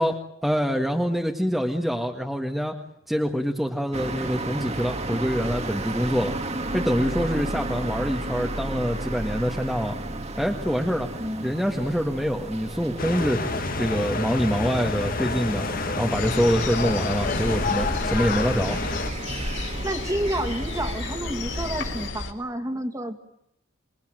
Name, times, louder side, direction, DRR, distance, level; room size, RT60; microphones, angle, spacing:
voice 1, 0.0-2.7 3.1-6.3 6.7-10.0 10.4-11.1 11.4-13.5 13.8-15.7 16.0-18.8, equal, ahead, 1 dB, 1.8 m, -25 dB
sound 1, 3.9-22.1, right 2 dB, 30° right, 2.1 m, -34 dB
voice 2, 11.2-11.5 19.8-23.2, right 1 dB, 15° right, 7 dB, 2.4 m, -30 dB
sound 2, 13.0-19.1, left 3 dB, 45° left, 2.0 m, -28 dB
sound 3, 16.1-22.3, left 2 dB, 60° left, 4.0 m, -32 dB
28.0 x 22.5 x 9.2 m, 0.77 s
head